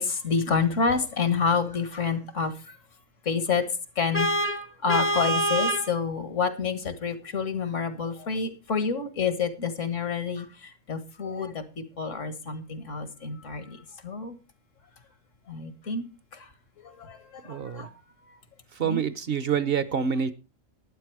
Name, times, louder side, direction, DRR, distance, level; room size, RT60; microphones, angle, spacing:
voice 1, 0.0-2.8 3.2-3.6 4.0-14.4 15.5-16.0 16.3-16.5 16.8-18.0 18.3-18.4 18.8-19.0, left 5 dB, 75° left, 11 dB, 1.9 m, -29 dB
Vehicle horn car horn honking, 4.1-5.9, right 1 dB, 15° left, 0.6 m, -25 dB
voice 2, 17.5-17.9 18.8-20.3, right 7 dB, 55° right, 14 dB, 0.9 m, -27 dB
11.5 x 9.7 x 4.7 m, 0.31 s
omnidirectional pair, 1.3 m